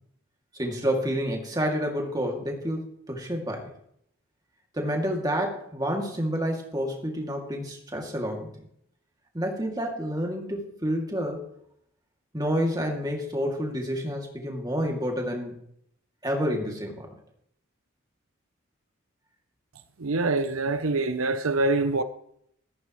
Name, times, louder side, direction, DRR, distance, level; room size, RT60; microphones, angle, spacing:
voice 1, 0.5-3.7 4.7-8.5 9.3-11.5 12.3-15.6 16.2-17.1, equal, 20° right, 2.4 m, -29 dB
voice 2, 20.0-22.0, right 2 dB, 80° right, 0.7 m, -25 dB
14.5 x 14.0 x 3.1 m
head